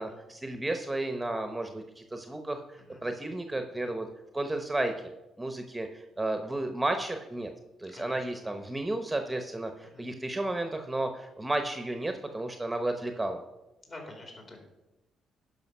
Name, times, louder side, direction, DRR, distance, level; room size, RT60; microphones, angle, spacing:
voice 1, 0.0-4.1 4.3-5.1 5.4-7.5 7.8-13.4, right 2 dB, 10° right, 6 dB, 0.9 m, -33 dB
voice 2, 7.9-8.5 9.8-10.1 13.9-14.6, left 2 dB, 40° left, 1 dB, 3.1 m, -48 dB
11.5 x 5.2 x 5.5 m, 0.96 s
cardioid pair, 90°, 0 cm